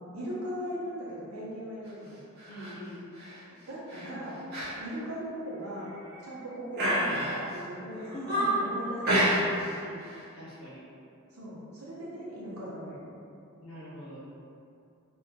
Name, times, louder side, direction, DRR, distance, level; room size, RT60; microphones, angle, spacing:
voice 1, 0.1-2.2 3.5-4.4 4.8-5.9 6.2-9.5 11.3-13.0, equal, 75° right, -7 dB, 0.8 m, -39 dB
sound 1, 2.4-2.7 3.2-3.4 3.9-4.1 4.5-4.7 5.1-5.2 5.8-6.3 6.8-7.6 8.0-8.7 9.0-9.7 10.0-10.2, right 1 dB, 45° right, 0.7 m, -29 dB
voice 2, 2.5-3.1 8.1-8.8 9.6-10.0 10.3-10.8 13.6-14.2, equal, 65° left, -8 dB, 0.9 m, -42 dB
2.7 x 2.3 x 2.8 m, 2.5 s
head